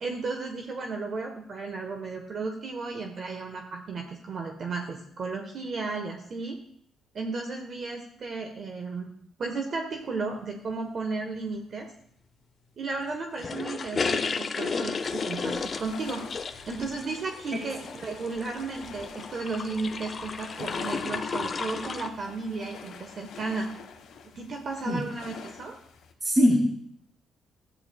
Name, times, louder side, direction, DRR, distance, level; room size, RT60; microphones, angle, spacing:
voice 1, 0.0-6.6 7.1-9.1 9.4-11.9 12.8-16.2 16.7-23.7 24.3-25.8, right 3 dB, 50° right, 3 dB, 1.2 m, -34 dB
sound 1, 13.4-22.1, left 5 dB, 40° left, 0.7 m, -33 dB
sound 2, 15.0-26.1, left 6 dB, 75° left, 1.4 m, -46 dB
voice 2, 26.2-26.7, equal, 25° right, -2 dB, 2.5 m, -21 dB
13.0 x 9.4 x 2.3 m, 0.68 s
cardioid pair, 90°, 0 cm